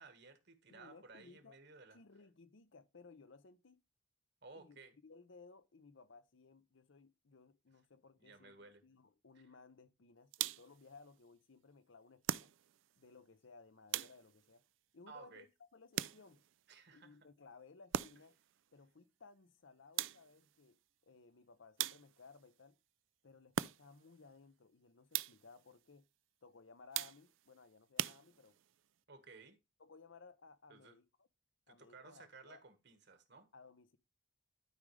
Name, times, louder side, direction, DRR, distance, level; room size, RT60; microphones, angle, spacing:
voice 1, 0.0-2.0 4.4-4.9 8.2-8.8 15.1-15.5 16.7-17.2 29.1-29.6 30.7-31.0 31.7-33.5, right 4 dB, 60° right, 1.6 m, -57 dB
voice 2, 0.7-1.6 1.9-3.8 4.5-12.5 13.0-14.6 14.9-15.5 15.7-16.4 16.9-18.3 18.7-22.8 23.2-26.0 26.4-28.6 29.8-31.3 31.7-32.6 33.5-34.0, left 4 dB, 70° left, 0.7 m, -60 dB
sound 1, 10.3-10.8 12.2-12.9 13.9-14.5 15.9-16.5 17.9-18.4 20.0-20.5 21.8-22.4 23.5-24.1 25.1-25.6 26.9-27.5 28.0-28.7, right 11 dB, 75° right, 0.4 m, -41 dB
12.0 x 5.1 x 3.3 m
head